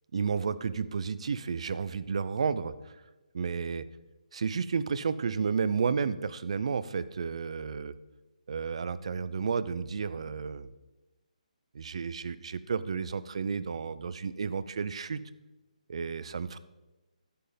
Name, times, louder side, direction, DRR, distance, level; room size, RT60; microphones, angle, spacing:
voice 1, 0.1-3.0 3.3-3.9 4.3-7.9 8.5-10.7 11.7-15.2 15.9-16.6, right 5 dB, 50° right, 16 dB, 0.5 m, -32 dB
11.0 x 7.6 x 5.1 m, 1.1 s
hypercardioid pair, 170°, 4 cm